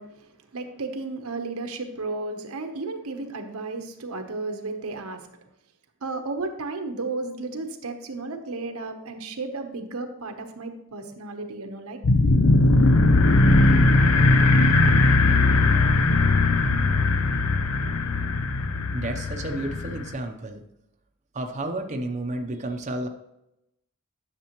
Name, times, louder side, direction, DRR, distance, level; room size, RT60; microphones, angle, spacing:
voice 1, 0.0-5.3 6.0-12.0, right 3 dB, 80° right, 6 dB, 1.0 m, -33 dB
sound 1, 12.0-20.1, left 2 dB, 75° left, 0.7 m, -19 dB
voice 2, 18.9-20.6 21.3-23.1, right 1 dB, 35° right, 3 dB, 0.7 m, -31 dB
10.0 x 6.8 x 3.0 m, 0.85 s
head